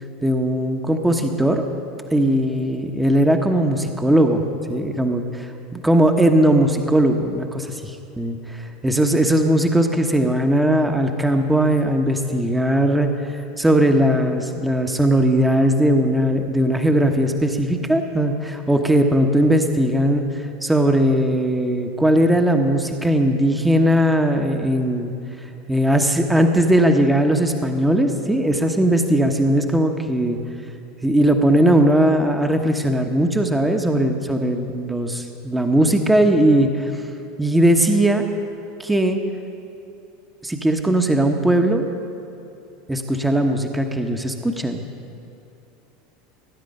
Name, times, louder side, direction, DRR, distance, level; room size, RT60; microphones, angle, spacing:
voice 1, 0.2-1.6 2.1-4.4 4.7-13.1 13.6-20.2 20.6-25.1 25.7-30.4 31.0-36.9 37.4-38.2 38.8-39.2 40.4-41.8 42.9-44.8, right 1 dB, 5° right, 4 dB, 1.1 m, -19 dB
18.5 x 9.6 x 5.4 m, 2.8 s
hypercardioid pair, 85°, 0 cm